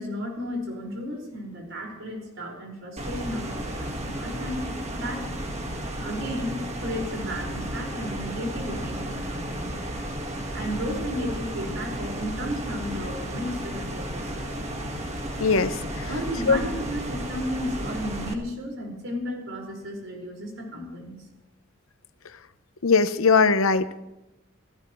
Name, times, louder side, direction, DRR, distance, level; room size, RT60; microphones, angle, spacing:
voice 1, 0.0-5.3 6.0-9.8 10.5-14.3 16.1-21.2, equal, 70° right, 0 dB, 5.1 m, -33 dB
sound 1, 3.0-18.3, right 1 dB, 35° right, 1.7 m, -33 dB
voice 2, 15.4-15.7 16.5-16.6 22.8-24.0, left 4 dB, 90° left, 12 dB, 0.8 m, -20 dB
27.5 x 15.5 x 3.2 m, 0.97 s
head